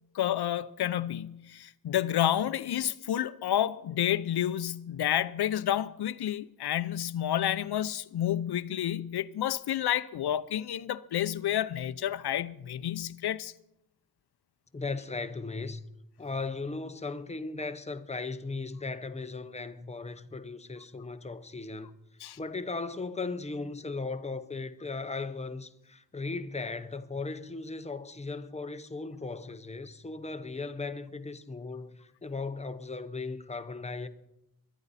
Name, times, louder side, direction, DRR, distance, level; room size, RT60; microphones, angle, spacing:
voice 1, 0.1-13.5 22.2-22.4, left 11 dB, 85° left, 0.7 m, -30 dB
voice 2, 14.7-15.9 16.2-21.9 22.4-34.1, left 3 dB, 15° left, 0.7 m, -37 dB
22.5 x 11.5 x 4.1 m
wide cardioid pair, 165°, 38 cm